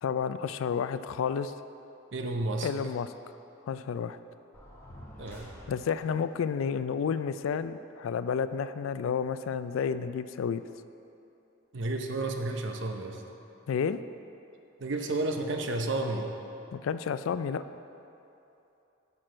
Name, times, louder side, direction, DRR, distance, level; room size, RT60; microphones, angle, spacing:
voice 1, 0.0-1.5 2.6-3.1 3.7-4.2 5.7-10.6 13.7-14.0 16.7-17.6, left 6 dB, 80° left, 12 dB, 0.3 m, -31 dB
voice 2, 2.1-2.7 5.2-5.5 11.7-13.2 14.8-16.4, right 2 dB, 65° right, 4 dB, 0.7 m, -31 dB
sound 1, 4.5-6.2, equal, 10° left, 1.0 m, -48 dB
9.8 x 6.1 x 4.4 m, 2.9 s
head